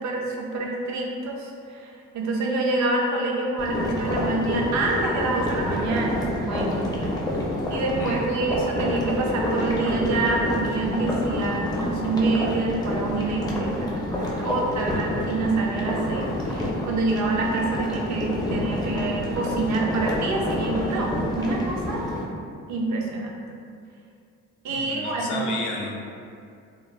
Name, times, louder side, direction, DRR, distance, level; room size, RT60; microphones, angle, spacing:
voice 1, 0.0-6.8 7.7-22.0 22.7-23.3 24.6-25.5, right 3 dB, 65° right, -1 dB, 0.5 m, -27 dB
sound 1, 3.6-22.2, left 1 dB, 15° left, 0.5 m, -28 dB
voice 2, 24.7-25.9, left 3 dB, 80° left, -2 dB, 0.5 m, -32 dB
2.2 x 2.0 x 3.1 m, 2.4 s
cardioid pair, 90°, 30 cm